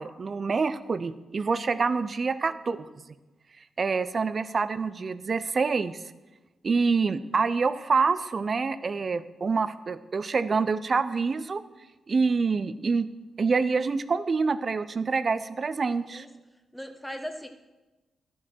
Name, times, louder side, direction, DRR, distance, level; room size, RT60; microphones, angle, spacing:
voice 1, 0.0-2.8 3.8-6.0 6.6-11.6 12.1-13.1 13.4-16.2, right 4 dB, 50° right, 14 dB, 0.6 m, -26 dB
voice 2, 2.5-2.9 16.0-16.3 16.7-17.5, equal, 5° left, 6 dB, 1.5 m, -39 dB
12.0 x 6.2 x 6.2 m, 1.1 s
supercardioid pair, 50°, 0 cm